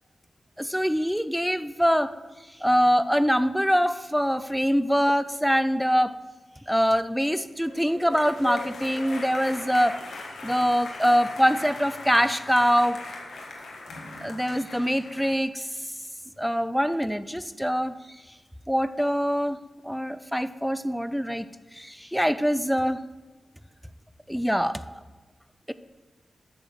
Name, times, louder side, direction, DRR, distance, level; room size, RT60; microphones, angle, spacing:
voice 1, 0.6-2.1 2.6-6.2 6.7-10.0 10.4-13.0 14.2-15.7 16.4-17.9 18.7-19.6 19.8-21.5 21.8-23.0 24.3-24.8 25.7-25.8, equal, ahead, 12 dB, 0.3 m, -24 dB
sound 1, 7.5-15.4, left 3 dB, 85° left, 1.5 m, -39 dB
8.6 x 6.6 x 6.2 m, 1.3 s
wide cardioid pair, 115°, 0 cm